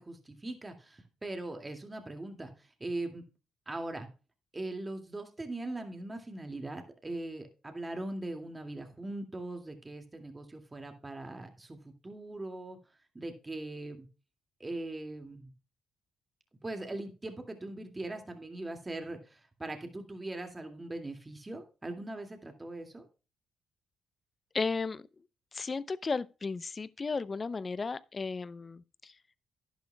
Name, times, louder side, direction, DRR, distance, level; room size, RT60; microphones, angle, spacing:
voice 1, 0.0-3.2 3.7-4.1 4.5-12.8 13.1-14.1 14.6-15.5 16.6-23.1, right 2 dB, 25° right, 2.2 m, -40 dB
voice 2, 24.5-25.0 25.5-29.1, left 4 dB, 35° left, 0.6 m, -34 dB
11.5 x 10.5 x 2.3 m
supercardioid pair, 55°, 0 cm